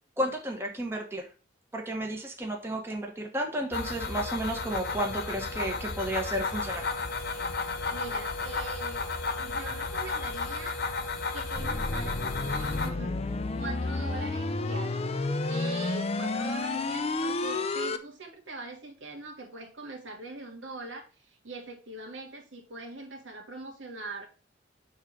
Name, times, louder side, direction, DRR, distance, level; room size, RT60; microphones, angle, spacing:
voice 1, 0.2-1.2 1.7-6.8, right 1 dB, 15° right, 1.2 m, -32 dB
sound 1, 3.7-12.9, left 4 dB, 55° left, 1.1 m, -33 dB
voice 2, 7.9-9.1 9.3-10.8 11.3-13.3 13.6-24.3, right 2 dB, 90° right, 1.7 m, -42 dB
sound 2, 11.5-18.0, left 3 dB, 35° left, 0.5 m, -31 dB
6.6 x 3.7 x 6.0 m
head